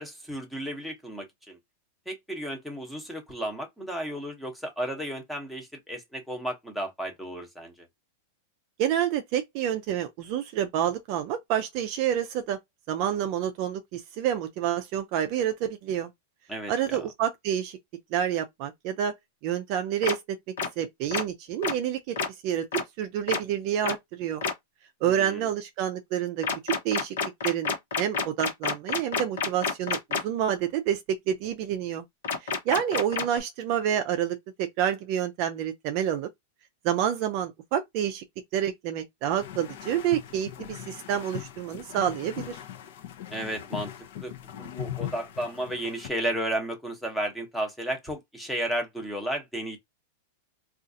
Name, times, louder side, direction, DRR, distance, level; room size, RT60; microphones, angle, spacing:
voice 1, 0.0-1.6 2.1-7.9 16.5-17.0 25.0-25.5 43.3-43.9 44.2-49.8, right 1 dB, ahead, 0.8 m, -33 dB
voice 2, 8.8-12.6 12.9-16.1 16.7-17.8 18.1-19.1 19.4-20.4 20.8-22.2 22.4-22.7 23.0-24.4 25.0-27.2 27.4-27.7 28.0-32.0 32.4-36.3 36.8-38.2 38.5-42.6, right 10 dB, 40° right, 0.4 m, -28 dB
sound 1, 20.0-20.1 20.6-20.7 21.1-21.2 21.6-21.7 22.2-22.3 22.7-22.8 23.3-23.4 23.8-23.9 24.4-24.5 26.4-30.2 32.2-33.4, left 5 dB, 80° left, 1.0 m, -28 dB
sound 2, 39.4-46.1, left 11 dB, 60° left, 0.6 m, -40 dB
3.8 x 2.4 x 2.6 m
supercardioid pair, 155°, 0 cm